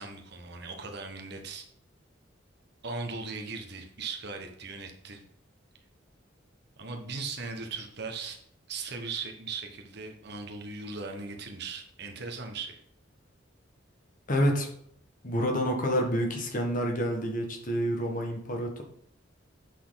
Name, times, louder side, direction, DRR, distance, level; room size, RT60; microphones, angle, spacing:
voice 1, 0.0-1.7 2.8-5.2 6.8-8.4 8.7-12.8, right 4 dB, 60° right, 3 dB, 1.3 m, -38 dB
voice 2, 14.3-14.7 15.2-18.8, equal, 45° left, 2 dB, 1.6 m, -28 dB
8.4 x 6.3 x 4.0 m, 0.64 s
head